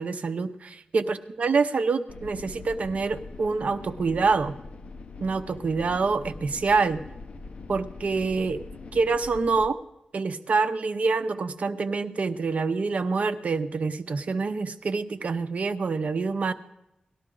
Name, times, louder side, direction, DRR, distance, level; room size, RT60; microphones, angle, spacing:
voice 1, 0.0-4.5 5.2-7.0 7.7-8.6 8.9-9.8 10.1-16.5, right 4 dB, 60° right, 10 dB, 0.7 m, -26 dB
sound 1, 2.1-9.7, left 3 dB, 50° left, 0.7 m, -42 dB
18.5 x 12.0 x 3.8 m, 0.86 s
wide cardioid pair, 130°, 3 cm